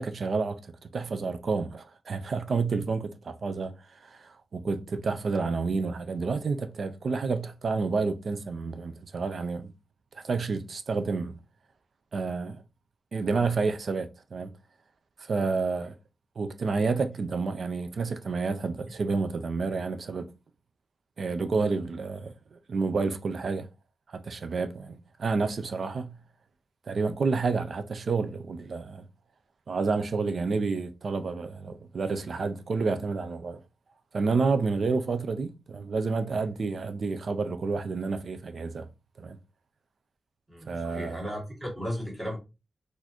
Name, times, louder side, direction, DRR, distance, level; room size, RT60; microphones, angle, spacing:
voice 1, 0.0-9.7 10.1-11.4 12.1-12.6 13.1-14.5 15.2-15.9 16.4-20.3 21.2-23.7 24.1-26.1 26.9-29.0 29.7-33.6 34.1-38.9 39.2-39.4 40.7-41.3, right 4 dB, 45° right, 0.3 m, -29 dB
voice 2, 40.5-42.4, equal, 15° right, 1.4 m, -35 dB
4.1 x 2.5 x 2.8 m
wide cardioid pair, 170°, 0 cm